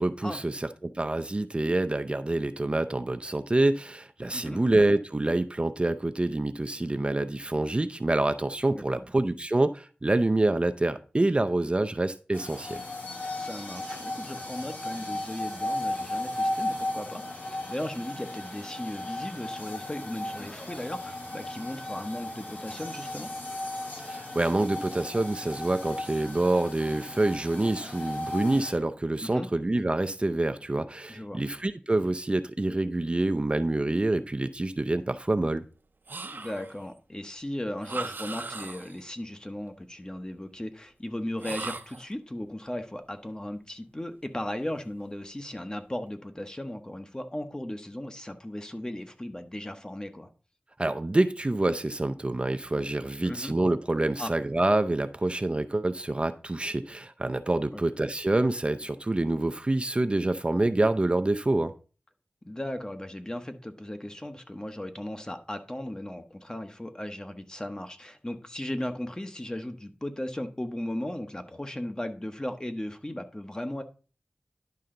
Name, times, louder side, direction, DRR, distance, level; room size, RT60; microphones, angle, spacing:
voice 1, 0.0-12.8 24.0-35.6 50.8-61.7, right 2 dB, 30° right, 0.5 m, -27 dB
voice 2, 8.7-9.0 13.3-23.3 29.2-29.5 31.1-31.4 36.3-50.3 53.2-53.5 54.2-54.3 62.4-73.8, left 1 dB, 20° left, 1.1 m, -36 dB
sound 1, 12.3-28.7, left 1 dB, 65° left, 3.0 m, -36 dB
sound 2, 36.1-36.8 37.8-39.0 41.4-42.1, right 3 dB, 70° right, 0.8 m, -38 dB
11.0 x 5.6 x 3.8 m
wide cardioid pair, 65°, 3 cm